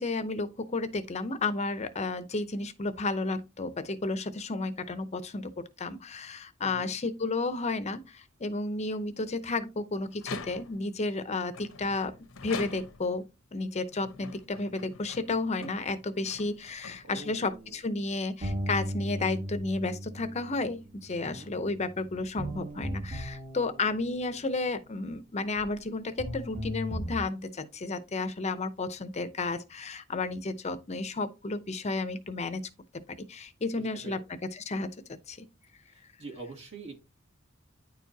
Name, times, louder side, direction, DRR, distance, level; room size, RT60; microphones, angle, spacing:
voice 1, 0.0-5.5 5.8-12.1 12.4-13.2 13.5-32.6 33.3-34.2 34.7-34.9 35.3-35.5, left 3 dB, 35° left, 0.6 m, -32 dB
voice 2, 6.6-7.0 17.0-17.8 21.2-21.5 33.8-34.2 35.8-36.9, right 3 dB, 65° right, 2.2 m, -45 dB
sound 1, 10.1-10.9 11.5-13.2 13.9-17.4, left 4 dB, 85° left, 0.9 m, -44 dB
sound 2, 18.4-24.3 25.6-25.7 26.2-27.2, equal, 35° right, 1.3 m, -37 dB
9.7 x 4.6 x 2.8 m
head